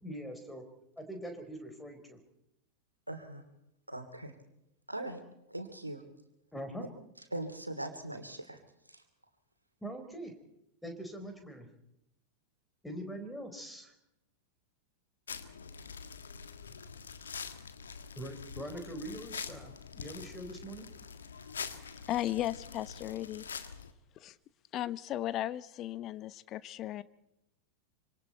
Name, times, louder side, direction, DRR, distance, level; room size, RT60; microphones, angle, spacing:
voice 1, 0.0-0.7 1.0-2.2 6.5-6.9 9.8-10.3 10.8-11.7 12.8-13.9 18.2-20.9, right 1 dB, 5° left, 6 dB, 4.5 m, -43 dB
voice 2, 3.1-3.4 3.9-4.3 4.9-5.2 5.5-6.0 7.3-8.6 8.9-9.0, right 1 dB, 85° right, 8 dB, 2.8 m, -40 dB
sound 1, 15.3-23.9, left 6 dB, 70° left, 1.6 m, -45 dB
voice 3, 22.1-23.5 24.2-24.4 24.7-27.0, left 13 dB, 35° left, 16 dB, 0.9 m, -36 dB
26.0 x 26.0 x 4.5 m, 0.83 s
figure-of-eight pair, 90°, 0 cm